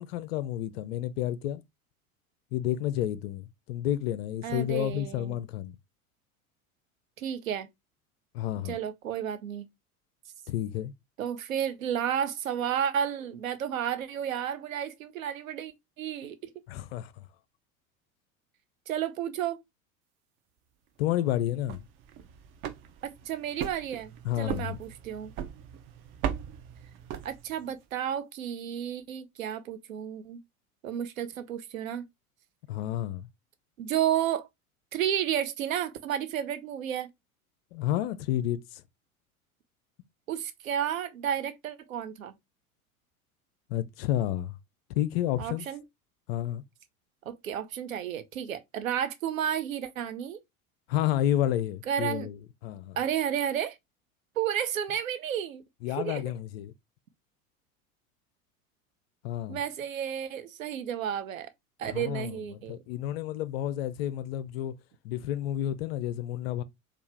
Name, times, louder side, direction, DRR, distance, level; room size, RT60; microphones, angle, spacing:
voice 1, 0.0-1.6 2.5-5.8 8.3-8.8 10.5-10.9 16.7-17.2 21.0-21.8 24.2-24.8 32.7-33.3 37.7-38.8 43.7-44.6 44.9-45.6 46.3-46.6 50.9-53.0 55.8-56.7 59.2-59.6 61.9-62.4 62.7-64.8 65.0-66.6, left 12 dB, 45° left, 0.5 m, -30 dB
voice 2, 4.4-5.4 7.2-7.7 8.6-9.7 11.2-16.4 18.9-19.6 23.0-24.1 24.4-25.3 27.2-30.4 30.8-32.0 33.8-34.5 34.9-37.1 40.3-42.3 45.4-45.8 47.3-50.4 51.9-52.3 53.0-53.8 54.4-55.6 56.0-56.2 59.5-61.5 61.8-62.8, right 9 dB, 65° right, 0.8 m, -32 dB
sound 1, 21.5-27.8, right 8 dB, 30° right, 0.5 m, -39 dB
4.4 x 2.4 x 3.3 m
figure-of-eight pair, 80°, 43 cm